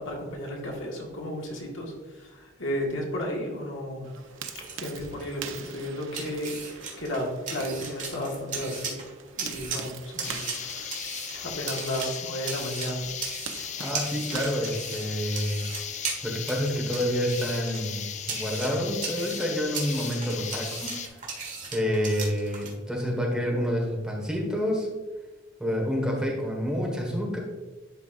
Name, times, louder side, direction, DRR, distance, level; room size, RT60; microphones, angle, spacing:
voice 1, 0.0-4.0 4.8-9.0 9.4-10.4 11.4-13.1, equal, 80° left, -1 dB, 1.6 m, -33 dB
sound 1, 4.0-15.5, right 7 dB, 80° right, 0.6 m, -44 dB
sound 2, 4.2-22.7, right 5 dB, 40° right, 1.7 m, -38 dB
sound 3, 10.2-21.1, left 8 dB, 35° left, 0.4 m, -37 dB
voice 2, 13.8-15.7 16.2-21.0 21.7-24.9 25.6-27.4, equal, 5° right, -2 dB, 1.4 m, -28 dB
11.0 x 4.9 x 2.5 m, 1.2 s
head